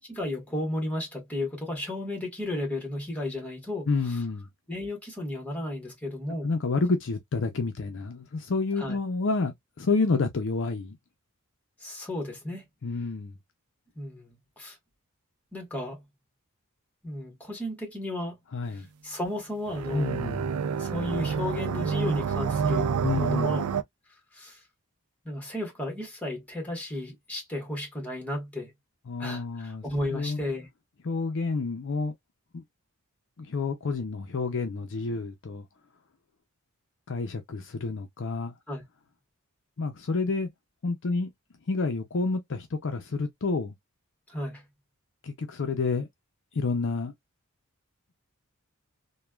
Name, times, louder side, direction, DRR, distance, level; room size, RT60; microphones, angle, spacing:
voice 1, 0.1-4.2 4.7-6.5 8.8-9.0 11.8-12.7 13.9-14.8 15.5-16.0 17.0-18.4 18.7-20.2 20.8-23.6 24.3-24.6 25.2-28.7 29.2-30.7 38.7-38.8 44.3-44.6, left 1 dB, 5° left, 1.3 m, -34 dB
voice 2, 3.9-4.5 6.4-11.0 12.8-13.3 18.5-18.9 19.9-20.6 23.0-23.6 29.1-30.4 31.0-32.1 32.5-32.6 33.4-35.7 37.1-38.5 39.8-40.5 40.8-41.3 41.7-43.7 45.2-46.1 46.5-47.1, left 3 dB, 60° left, 0.6 m, -29 dB
sound 1, 19.7-23.8, right 6 dB, 80° right, 0.4 m, -28 dB
3.1 x 2.3 x 2.2 m
head